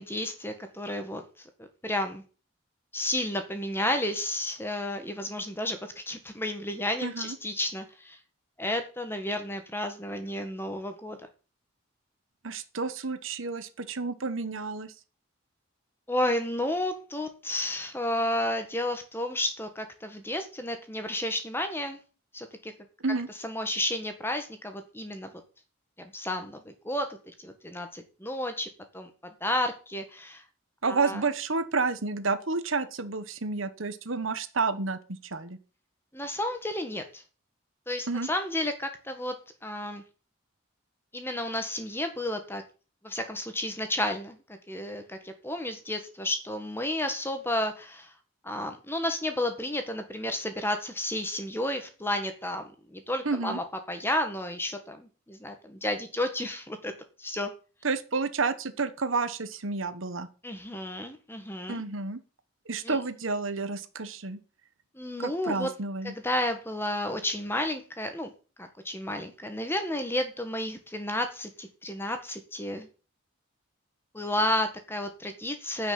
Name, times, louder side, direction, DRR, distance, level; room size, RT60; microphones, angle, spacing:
voice 1, 0.0-1.5 1.8-2.2 2.9-8.2 8.6-11.2 16.1-22.0 22.3-22.7 23.4-25.3 26.0-28.7 28.9-29.1 29.4-30.4 30.8-31.2 36.1-37.2 37.9-39.3 39.6-40.0 41.1-42.6 43.0-48.1 48.4-56.9 57.2-57.5 60.4-61.8 62.8-63.0 64.9-65.7 66.0-68.3 68.6-72.9 74.1-75.9, left 1 dB, 10° left, 7 dB, 1.6 m, -32 dB
voice 2, 7.0-7.3 12.4-14.9 23.0-23.3 30.8-35.6 38.1-38.3 53.2-53.6 57.8-60.3 61.7-62.2 62.7-64.4 65.2-66.1, right 4 dB, 70° right, 12 dB, 1.2 m, -30 dB
10.0 x 6.0 x 8.7 m, 0.36 s
head